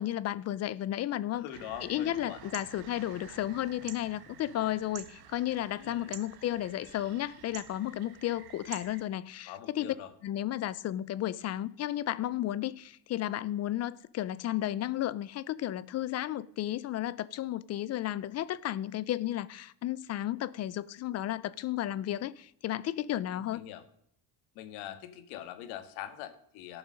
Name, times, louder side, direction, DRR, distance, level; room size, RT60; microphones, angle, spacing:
voice 1, 0.0-1.5 1.8-9.9 10.2-23.6, left 13 dB, 35° left, 0.4 m, -33 dB
voice 2, 1.3-2.4 5.7-6.1 9.5-10.1 23.3-23.8 24.6-26.8, left 11 dB, 80° left, 1.9 m, -43 dB
sound 1, 1.5-9.0, right 8 dB, 50° right, 1.6 m, -49 dB
17.0 x 7.1 x 5.2 m
cardioid pair, 145°, 48 cm